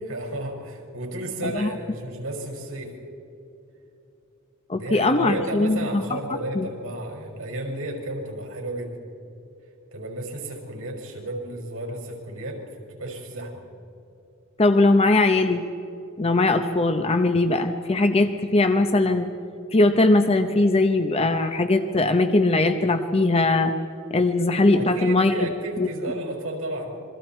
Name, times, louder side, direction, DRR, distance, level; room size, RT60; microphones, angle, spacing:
voice 1, 0.0-2.9 4.7-9.0 9.9-12.6 12.9-13.6 24.7-27.0, right 1 dB, 90° right, 1 dB, 5.6 m, -33 dB
voice 2, 4.7-6.2 6.5-6.7 14.6-15.7 16.2-19.3 19.7-23.7 24.1-25.5 25.8-25.9, left 2 dB, 30° left, 7 dB, 0.8 m, -20 dB
27.5 x 24.0 x 4.5 m, 2.9 s
head